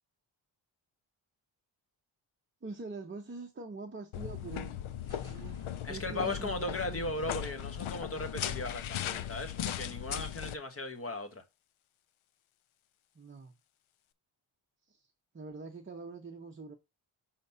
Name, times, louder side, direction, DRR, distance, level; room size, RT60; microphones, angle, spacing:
voice 1, 2.6-4.8 5.1-7.3 13.1-13.5 14.9-16.8, right 4 dB, 25° right, 0.7 m, -45 dB
sound 1, 4.1-10.5, left 10 dB, 80° left, 0.6 m, -38 dB
sound 2, 4.9-7.8, equal, 50° left, 3.1 m, -57 dB
voice 2, 5.8-11.4, left 2 dB, 30° left, 1.2 m, -37 dB
5.8 x 4.1 x 5.5 m
wide cardioid pair, 160°, 48 cm